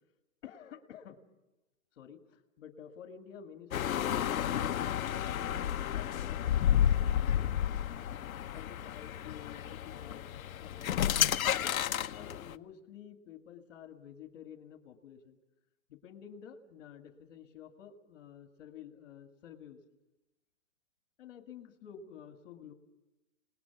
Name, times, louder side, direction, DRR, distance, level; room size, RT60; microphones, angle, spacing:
voice 1, 0.4-1.2 1.9-4.7 5.3-6.4 6.9-7.5 8.5-11.7 12.1-15.4 15.9-19.8 21.2-22.7, left 8 dB, 50° left, 5 dB, 2.3 m, -51 dB
sound 1, 3.7-12.6, left 10 dB, 75° left, 1.1 m, -31 dB
30.0 x 20.0 x 6.1 m, 1.0 s
hypercardioid pair, 165°, 41 cm